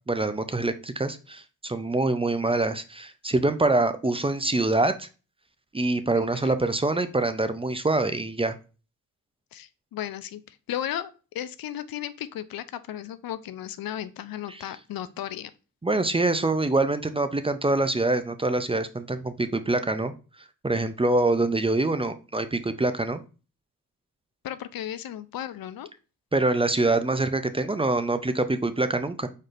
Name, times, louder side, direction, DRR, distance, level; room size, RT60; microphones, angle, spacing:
voice 1, 0.1-5.1 5.7-8.6 14.5-14.6 15.8-20.1 20.6-23.2 26.3-29.3, right 2 dB, 15° right, 10 dB, 0.5 m, -25 dB
voice 2, 6.1-6.6 9.5-15.5 24.4-25.9, left 11 dB, 80° left, 13 dB, 0.5 m, -35 dB
4.8 x 4.3 x 2.5 m, 0.34 s
cardioid pair, 65°, 35 cm